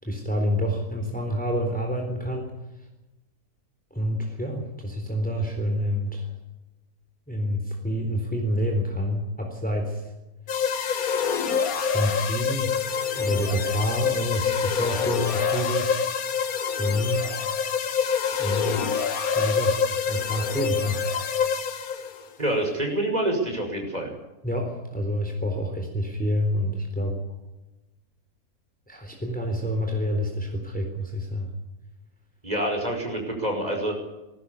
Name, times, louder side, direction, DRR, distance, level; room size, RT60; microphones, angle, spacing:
voice 1, 0.0-2.5 3.9-6.3 7.3-10.1 11.8-12.9 13.1-16.1 16.8-17.4 18.4-18.9 19.3-19.8 20.1-21.0 24.4-27.2 28.9-31.5, equal, 5° left, 2 dB, 3.8 m, -28 dB
sound 1, 10.5-22.2, left 6 dB, 70° left, 1.7 m, -26 dB
voice 2, 22.4-24.1 32.4-33.9, right 1 dB, 25° right, 2 dB, 5.8 m, -26 dB
20.0 x 17.5 x 8.4 m, 1.0 s
omnidirectional pair, 1.6 m